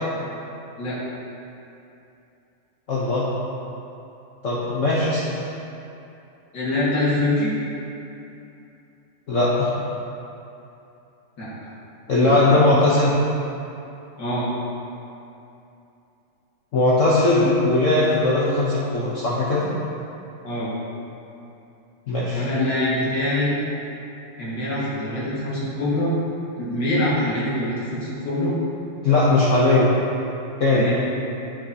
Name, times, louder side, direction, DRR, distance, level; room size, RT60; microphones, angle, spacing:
voice 1, 2.9-3.3 4.4-5.2 9.3-9.7 12.1-13.2 16.7-19.7 22.1-22.4 29.0-29.9 30.6-30.9, left 2 dB, 90° left, -7 dB, 0.6 m, -19 dB
voice 2, 6.5-7.5 11.4-11.5 12.2-12.5 14.2-14.5 20.4-20.7 22.3-23.5 24.4-26.1 26.6-28.5 30.7-31.0, left 1 dB, 55° left, -8 dB, 2.1 m, -24 dB
7.7 x 5.9 x 2.8 m, 2.8 s
omnidirectional pair, 2.4 m